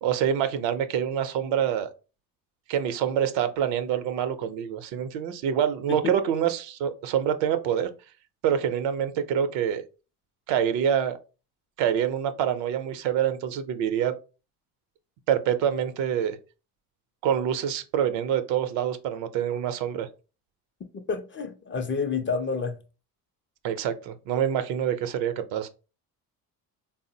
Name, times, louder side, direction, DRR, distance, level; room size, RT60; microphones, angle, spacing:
voice 1, 0.0-1.9 2.7-7.9 8.4-9.8 10.5-11.2 11.8-14.1 15.3-16.4 17.2-20.1 23.6-25.7, right 9 dB, 70° right, 0.6 m, -26 dB
voice 2, 21.1-22.8, left 5 dB, 30° left, 0.4 m, -29 dB
3.6 x 2.0 x 2.6 m
supercardioid pair, 70°, 45 cm